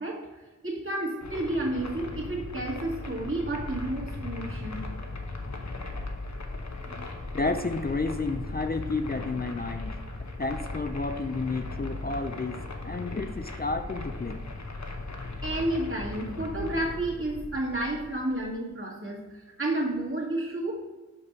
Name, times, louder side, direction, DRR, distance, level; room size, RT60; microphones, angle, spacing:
voice 1, 0.0-4.9 6.9-7.0 15.1-20.7, right 1 dB, 45° right, -3 dB, 1.9 m, -31 dB
sound 1, 1.2-18.5, left 2 dB, 70° left, 0.9 m, -38 dB
voice 2, 7.3-10.0 10.4-14.4, left 3 dB, 30° left, 7 dB, 0.4 m, -31 dB
5.6 x 5.4 x 4.6 m, 1.2 s
wide cardioid pair, 45°, 29 cm